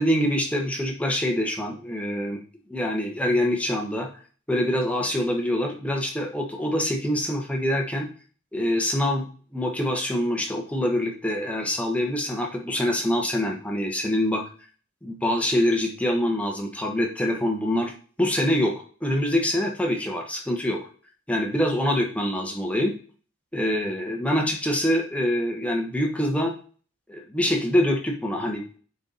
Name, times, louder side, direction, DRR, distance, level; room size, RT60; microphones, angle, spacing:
voice 1, 0.0-2.4 2.7-4.1 4.5-8.1 8.5-9.2 9.5-14.4 15.0-17.9 18.2-18.7 19.0-20.9 21.3-22.9 23.5-26.5 27.1-28.6, left 1 dB, 5° left, 0 dB, 1.2 m, -25 dB
9.7 x 4.6 x 4.0 m, 0.41 s
head